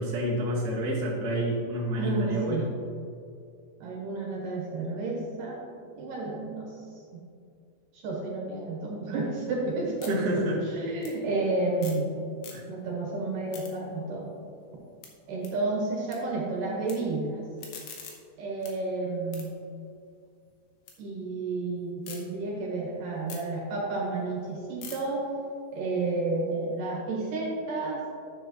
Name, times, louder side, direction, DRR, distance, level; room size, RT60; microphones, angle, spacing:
voice 1, 0.0-2.6 10.1-10.6 12.5-12.6, right 1 dB, 85° right, -5 dB, 0.8 m, -28 dB
voice 2, 1.9-2.7 3.8-6.8 7.1-7.2 7.9-12.2 12.7-14.3 15.3-17.4 18.4-19.6 21.0-25.3 25.7-28.0, right 3 dB, 65° right, -2 dB, 2.3 m, -31 dB
sound 1, 9.1-12.1 12.3-13.0 13.3-16.2 16.5-16.9 17.4-21.0 21.3-22.2 22.6-26.8, left 6 dB, 70° left, 2.9 m, -49 dB
12.0 x 7.8 x 3.0 m, 2.4 s
omnidirectional pair, 5.2 m